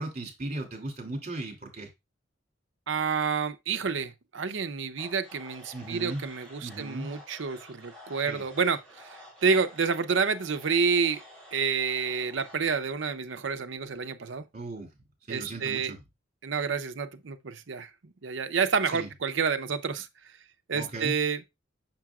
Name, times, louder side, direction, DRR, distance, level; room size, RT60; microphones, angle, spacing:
voice 1, 0.0-1.9 5.7-6.3 6.6-7.1 8.2-8.4 14.5-14.9 15.3-16.0 18.9-19.1 20.7-21.1, right 2 dB, 40° right, 2.6 m, -36 dB
voice 2, 2.9-11.2 11.5-14.4 15.3-15.9 16.4-17.9 18.2-20.1 20.7-21.4, right 5 dB, 70° right, 0.6 m, -29 dB
sound 1, 5.0-12.6, equal, 5° left, 3.4 m, -50 dB
6.6 x 5.9 x 2.4 m
head